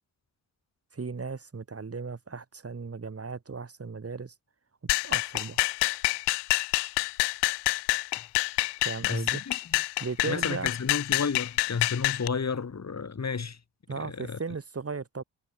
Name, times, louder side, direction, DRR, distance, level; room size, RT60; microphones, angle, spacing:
voice 1, 0.9-4.3 5.0-5.6 8.8-9.4 10.0-10.7 13.9-15.2, right 4 dB, 35° right, 4.2 m, -36 dB
sound 1, 4.9-12.3, left 23 dB, 85° left, 1.8 m, -27 dB
voice 2, 9.0-9.6 10.2-13.6 14.2-14.4, left 5 dB, 40° left, 4.0 m, -32 dB
hypercardioid pair, 50°, 40 cm